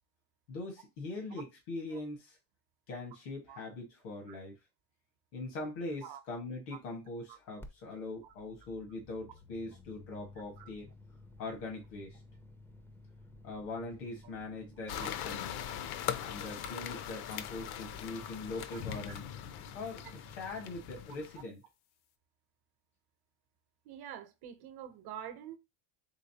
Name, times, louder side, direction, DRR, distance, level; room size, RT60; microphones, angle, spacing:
voice 1, 0.5-2.4 2.9-4.6 5.3-10.9 11.4-12.2 13.4-15.5 16.2-19.2 19.7-20.1 20.4-21.6, left 2 dB, 85° left, 1.7 m, -42 dB
sound 1, 7.6-7.7 8.0-21.0, left 2 dB, 5° left, 0.4 m, -55 dB
sound 2, 14.9-21.4, left 10 dB, 55° left, 0.6 m, -41 dB
voice 2, 23.8-25.6, right 10 dB, 55° right, 0.9 m, -46 dB
3.9 x 3.1 x 2.8 m
supercardioid pair, 100°, 46 cm